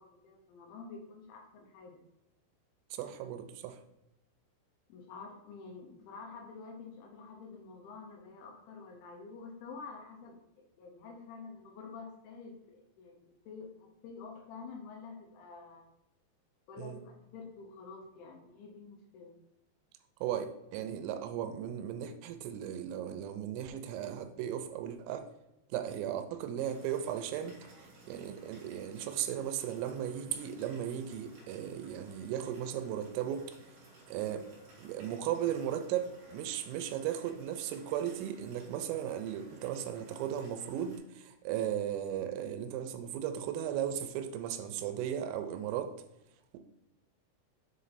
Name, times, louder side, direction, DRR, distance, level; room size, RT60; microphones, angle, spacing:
voice 1, 0.0-2.0 4.9-10.4 10.8-15.8 16.7-19.4, left 4 dB, 75° left, 3.2 m, -48 dB
voice 2, 2.9-3.8 16.8-17.0 20.2-20.5 20.7-25.3 25.7-33.4 34.1-34.5 34.8-46.0, right 10 dB, 85° right, 3.2 m, -36 dB
sound 1, 26.6-41.0, right 2 dB, 60° right, 2.8 m, -57 dB
7.6 x 3.2 x 4.0 m
omnidirectional pair, 5.9 m